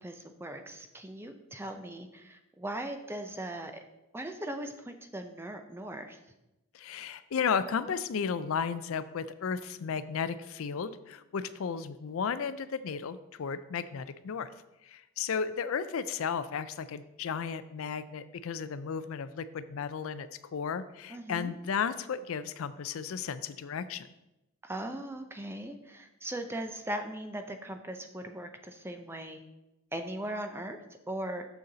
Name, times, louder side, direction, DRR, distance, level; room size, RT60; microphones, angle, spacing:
voice 1, 0.0-3.7 4.1-6.2 21.1-21.5 24.6-29.4 29.9-30.8 31.1-31.4, right 1 dB, 10° right, 6 dB, 0.5 m, -39 dB
voice 2, 6.7-14.5 14.8-24.1, left 6 dB, 65° left, 14 dB, 0.4 m, -34 dB
7.0 x 6.5 x 3.9 m, 0.94 s
head